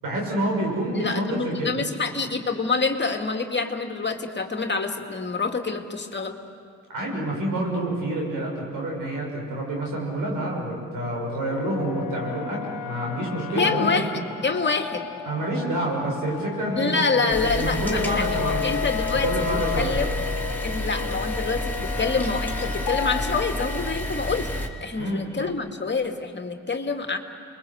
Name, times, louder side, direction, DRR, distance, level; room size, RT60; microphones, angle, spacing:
voice 1, 0.0-1.8 6.9-14.0 15.3-18.7 19.1-20.0 25.0-25.2, right 1 dB, 80° right, -1 dB, 6.9 m, -28 dB
voice 2, 0.9-6.4 13.6-14.1 14.4-15.1 16.8-19.3 19.8-20.1 20.6-24.5 24.8-27.2, left 4 dB, 35° left, 4 dB, 2.4 m, -26 dB
sound 1, 10.7-23.9, left 10 dB, 75° left, 1.1 m, -33 dB
sound 2, 17.3-24.7, left 1 dB, 5° left, 3.6 m, -30 dB
29.0 x 22.0 x 8.1 m, 2.3 s
supercardioid pair, 50°, 33 cm